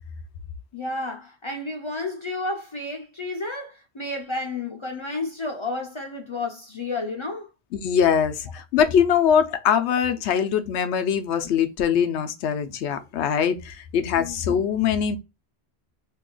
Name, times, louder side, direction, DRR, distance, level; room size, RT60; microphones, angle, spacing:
voice 1, 0.7-7.5 10.3-10.4 14.2-14.4, left 2 dB, 40° left, 0.4 m, -31 dB
voice 2, 7.8-15.2, left 8 dB, 90° left, 0.9 m, -22 dB
2.8 x 2.3 x 3.7 m
omnidirectional pair, 1.1 m